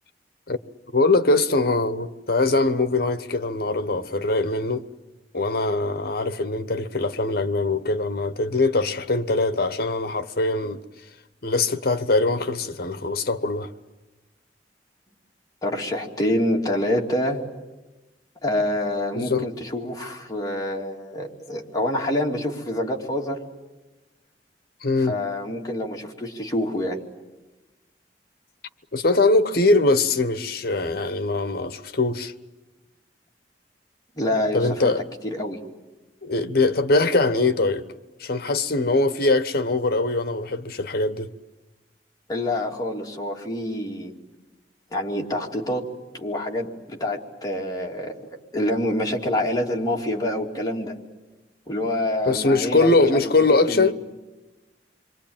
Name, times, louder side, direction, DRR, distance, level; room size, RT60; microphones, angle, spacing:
voice 1, 0.9-4.8 5.3-10.8 11.4-13.7 19.1-19.5 24.8-25.2 28.9-32.3 34.5-35.0 36.2-37.8 38.2-41.3 52.2-53.9, left 2 dB, 60° left, 1.1 m, -22 dB
voice 2, 15.6-17.4 18.4-23.4 25.0-27.0 34.2-34.9 35.2-35.6 42.3-44.1 44.9-45.9 46.1-50.9 51.7-53.9, left 1 dB, 20° left, 2.8 m, -26 dB
27.5 x 23.5 x 8.9 m
head